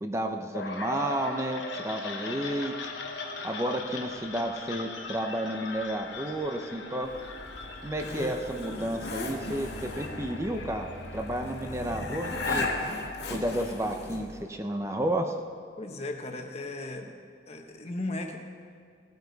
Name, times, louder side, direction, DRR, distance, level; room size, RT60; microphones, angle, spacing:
voice 1, 0.0-2.7 3.4-7.1 7.8-12.7 13.3-15.3, right 1 dB, 15° right, 4 dB, 0.6 m, -31 dB
sound 1, 0.5-14.4, left 3 dB, 90° left, 1.3 m, -38 dB
Zipper (clothing), 7.0-14.4, left 1 dB, 65° left, 2.0 m, -40 dB
voice 2, 15.8-17.1 17.5-18.4, left 2 dB, 35° left, 3 dB, 1.1 m, -36 dB
17.5 x 9.4 x 4.0 m, 2.2 s
head